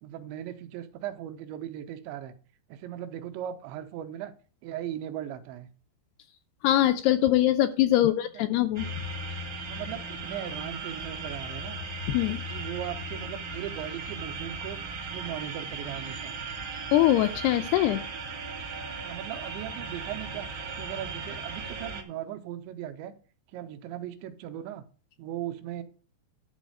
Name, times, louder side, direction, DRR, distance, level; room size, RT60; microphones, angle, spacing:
voice 1, 0.0-2.3 2.7-4.3 4.6-5.7 8.0-8.4 9.6-11.8 12.5-14.8 15.1-16.4 19.0-23.1 23.5-24.9 25.2-25.8, right 11 dB, 85° right, 8 dB, 3.1 m, -38 dB
voice 2, 6.6-8.9 12.1-12.4 16.9-18.0, left 13 dB, 80° left, 9 dB, 2.3 m, -23 dB
sound 1, 8.8-22.0, right 3 dB, 65° right, 1.1 m, -37 dB
11.5 x 4.1 x 7.8 m, 0.39 s
omnidirectional pair, 5.1 m